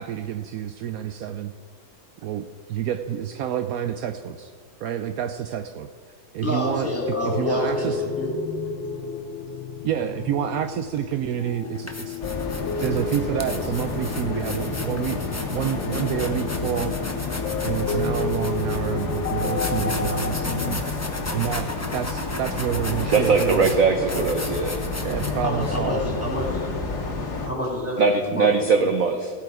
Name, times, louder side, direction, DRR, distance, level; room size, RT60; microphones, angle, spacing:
voice 1, 0.0-1.5 2.2-4.5 4.8-5.9 6.3-6.9 7.2-8.0 9.8-12.2 12.8-15.2 15.5-16.9 17.6-20.8 21.3-23.7 25.0-26.0, right 10 dB, 80° right, 8 dB, 0.8 m, -28 dB
voice 2, 6.4-8.3 18.1-18.2 25.4-26.7 27.5-28.5 28.8-28.9, left 1 dB, 5° left, -3 dB, 2.9 m, -28 dB
sound 1, 6.7-20.8, left 5 dB, 90° left, 1.4 m, -31 dB
sound 2, 11.0-11.1 11.6-25.8, left 2 dB, 25° left, 0.3 m, -36 dB
sound 3, 12.2-27.5, left 3 dB, 60° left, 1.9 m, -30 dB
voice 3, 23.1-24.8 28.0-29.3, right 4 dB, 55° right, 5 dB, 1.0 m, -20 dB
16.0 x 8.5 x 4.9 m, 2.1 s
omnidirectional pair, 2.0 m